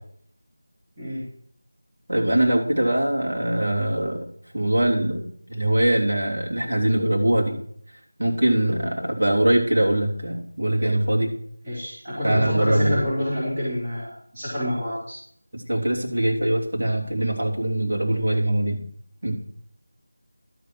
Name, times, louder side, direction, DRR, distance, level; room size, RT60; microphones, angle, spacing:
voice 1, 2.1-4.3 4.5-7.6 8.2-11.3 12.2-13.0 15.5-18.8 19.2-19.3, right 1 dB, 75° right, -1 dB, 3.1 m, -22 dB
voice 2, 11.6-15.2, equal, 20° right, -9 dB, 3.5 m, -27 dB
12.0 x 6.4 x 6.1 m, 0.63 s
figure-of-eight pair, 175°, 0 cm